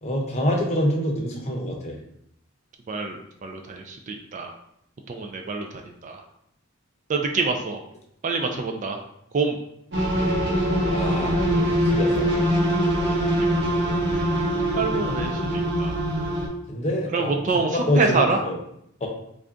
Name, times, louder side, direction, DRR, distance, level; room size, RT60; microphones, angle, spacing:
voice 1, 0.0-2.0 10.9-12.3 16.7-18.6 19.0-19.1, equal, 30° left, 0 dB, 0.7 m, -26 dB
voice 2, 2.9-4.5 5.1-6.2 7.1-7.8 8.2-9.0 9.3-9.6 13.3-13.5 14.1-14.3 14.8-16.0 17.1-18.4, right 4 dB, 35° right, 4 dB, 0.3 m, -26 dB
sound 1, 9.9-16.5, equal, 55° right, 1.0 m, -23 dB
3.3 x 2.6 x 3.6 m, 0.74 s
head